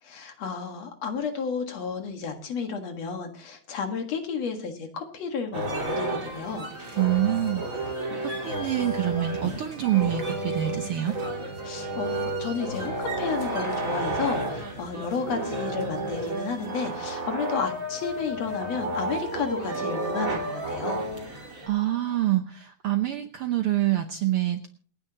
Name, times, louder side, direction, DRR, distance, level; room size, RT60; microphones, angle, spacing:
voice 1, 0.0-6.7 8.1-8.2 11.6-21.0, left 5 dB, 60° left, 5 dB, 2.7 m, -32 dB
sound 1, 5.5-21.7, right 1 dB, 30° right, 3.0 m, -31 dB
voice 2, 7.0-7.6 8.2-11.2 21.2-24.7, right 13 dB, 65° right, 6 dB, 1.4 m, -26 dB
28.0 x 9.6 x 2.9 m, 0.42 s
omnidirectional pair, 3.4 m